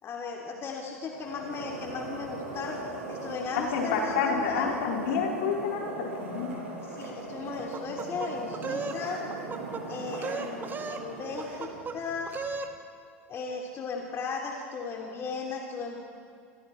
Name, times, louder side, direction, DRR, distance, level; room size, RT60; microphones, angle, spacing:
voice 1, 0.0-2.8 3.1-4.7 6.8-9.2 9.9-12.4 13.3-16.0, left 5 dB, 35° left, 0 dB, 3.0 m, -36 dB
sound 1, 1.0-12.6, right 3 dB, 75° right, 7.8 m, -40 dB
voice 2, 3.6-6.7, left 5 dB, 65° left, -1 dB, 4.6 m, -29 dB
sound 2, 7.7-9.0 9.3-9.8 10.1-11.1 11.4-12.0 12.3-12.7, right 4 dB, 25° right, 2.0 m, -35 dB
27.5 x 27.0 x 4.5 m, 2.4 s
hypercardioid pair, 85°, 7 cm